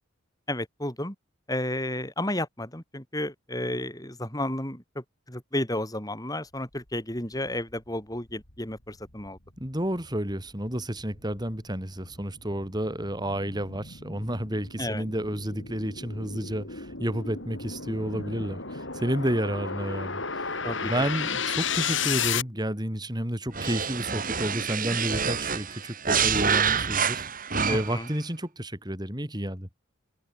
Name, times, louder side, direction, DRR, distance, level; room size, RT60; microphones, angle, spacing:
voice 1, 0.5-1.1 1.5-9.4 14.8-15.1 20.6-21.0 27.7-28.1, left 1 dB, 20° left, 7.8 m, -32 dB
sound 1, 7.7-7.8 8.3-22.4, left 6 dB, 65° left, 8.0 m, -34 dB
voice 2, 9.6-29.7, right 1 dB, 20° right, 4.8 m, -31 dB
sound 2, 23.5-28.1, right 6 dB, 45° right, 7.0 m, -27 dB
head